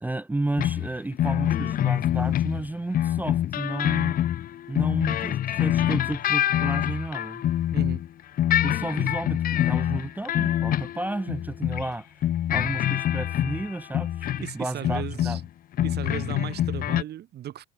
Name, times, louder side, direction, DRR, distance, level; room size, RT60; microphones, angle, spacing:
voice 1, 0.0-4.2 4.7-7.4 8.6-12.1 12.5-15.4, right 2 dB, 10° right, 0.6 m, -32 dB
sound 1, 0.6-8.1 8.4-11.9 12.2-14.5 14.8-15.5 15.7-17.0, left 11 dB, 50° left, 0.7 m, -25 dB
voice 2, 7.7-8.0 14.4-15.4 15.8-17.6, right 12 dB, 60° right, 2.4 m, -36 dB
cardioid pair, 105°, 19 cm